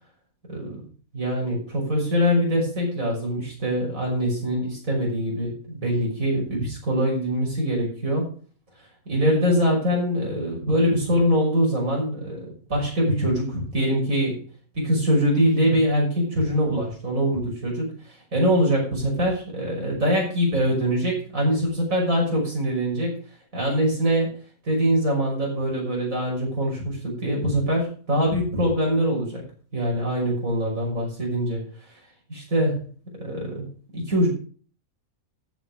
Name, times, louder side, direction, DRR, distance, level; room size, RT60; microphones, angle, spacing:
voice 1, 0.5-0.8 1.1-8.3 9.1-14.4 14.7-23.2 23.5-24.3 24.6-29.4 29.7-31.6 32.3-33.7 33.9-34.3, equal, 65° right, -2 dB, 6.4 m, -23 dB
14.0 x 7.5 x 4.9 m, 0.41 s
omnidirectional pair, 1.5 m